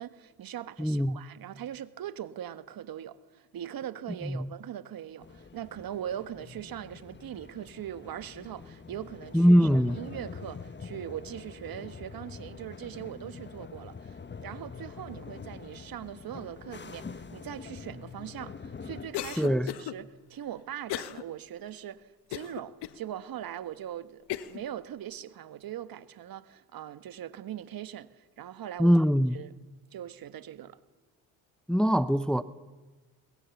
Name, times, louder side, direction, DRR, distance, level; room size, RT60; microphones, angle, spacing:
voice 1, 0.0-28.9 29.3-29.5 29.9-30.8, right 10 dB, 55° right, 1.3 m, -41 dB
voice 2, 0.8-1.2 4.2-4.5 9.3-10.0 19.4-19.7 28.8-29.4 31.7-32.4, equal, ahead, 0.8 m, -22 dB
sound 1, 5.2-19.6, left 5 dB, 25° left, 1.3 m, -45 dB
Cough, 19.1-19.9 20.9-21.2 21.7-21.8 22.3-23.0 23.6-23.7 24.3-24.6, left 13 dB, 65° left, 1.2 m, -36 dB
22.5 x 21.0 x 7.1 m
supercardioid pair, 65°, 43 cm